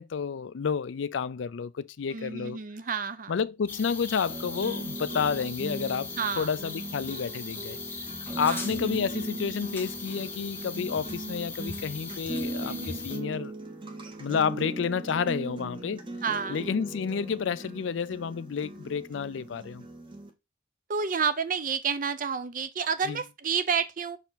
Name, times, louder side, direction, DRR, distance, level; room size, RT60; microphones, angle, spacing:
voice 1, 0.0-2.6 3.3-7.8 8.4-13.5 14.2-16.0 16.5-19.8 23.1-23.2, left 6 dB, 80° left, 0.4 m, -30 dB
voice 2, 2.1-3.4 6.2-6.5 8.4-8.7 12.6-13.1 16.2-16.6 20.9-24.2, right 6 dB, 45° right, 0.6 m, -30 dB
sound 1, 3.7-13.2, left 4 dB, 10° left, 0.8 m, -39 dB
sound 2, 4.3-20.3, right 2 dB, 25° right, 0.9 m, -39 dB
5.7 x 4.3 x 3.9 m
head